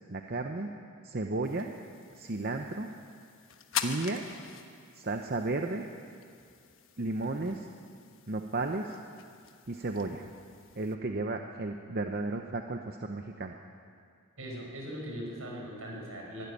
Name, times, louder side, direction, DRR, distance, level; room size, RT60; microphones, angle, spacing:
voice 1, 0.1-0.7 1.0-1.7 2.1-2.9 3.8-4.2 4.9-5.8 7.0-7.7 8.3-9.0 9.7-10.3 10.7-13.6, right 2 dB, 45° right, 4 dB, 0.8 m, -33 dB
sound 1, 1.4-10.9, left 8 dB, 65° left, 1.2 m, -44 dB
voice 2, 14.4-16.5, equal, 75° right, -1 dB, 5.5 m, -40 dB
22.5 x 12.5 x 10.0 m, 2.3 s
head